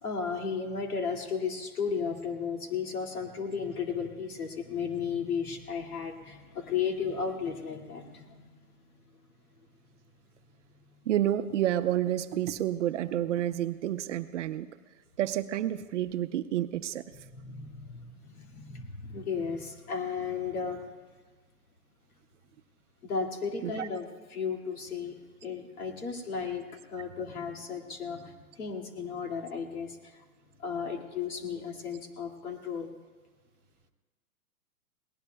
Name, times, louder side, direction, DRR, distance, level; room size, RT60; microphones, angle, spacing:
voice 1, 0.0-8.5 17.4-20.8 23.0-25.2 25.4-28.3 28.6-30.0 30.6-32.9, left 6 dB, 75° left, 3 dB, 2.4 m, -34 dB
voice 2, 11.1-14.7 15.2-17.0 23.6-23.9, right 12 dB, 55° right, 11 dB, 0.7 m, -29 dB
28.0 x 18.5 x 2.3 m, 1.4 s
hypercardioid pair, 140°, 45 cm